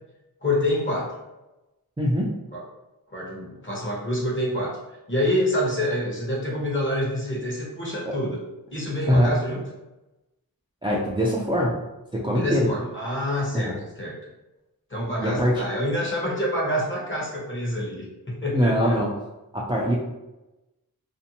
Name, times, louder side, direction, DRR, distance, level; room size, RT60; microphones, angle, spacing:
voice 1, 0.4-1.2 2.5-2.6 3.1-4.8 5.1-8.4 8.7-9.6 12.3-14.1 14.9-19.0, left 1 dB, 35° left, -3 dB, 1.0 m, -27 dB
voice 2, 2.0-2.3 8.1-8.2 9.1-9.3 10.8-11.8 12.1-12.7 13.5-13.8 15.2-15.7 18.5-19.1 19.5-19.9, equal, 15° right, -5 dB, 0.4 m, -22 dB
2.6 x 2.1 x 2.7 m, 1.0 s
wide cardioid pair, 50°, 37 cm